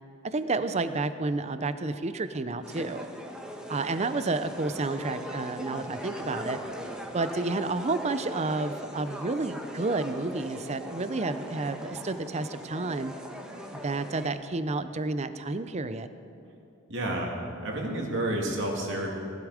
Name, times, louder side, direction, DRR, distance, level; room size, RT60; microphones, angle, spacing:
voice 1, 0.2-3.1 3.7-6.6 7.1-13.1 13.7-16.1, right 3 dB, 30° right, 11 dB, 0.6 m, -30 dB
sound 1, 2.6-14.3, equal, 5° right, 1.1 m, -40 dB
voice 2, 16.9-17.3 17.6-19.1, right 1 dB, 60° right, 0 dB, 2.4 m, -30 dB
18.5 x 11.5 x 5.0 m, 2.6 s
head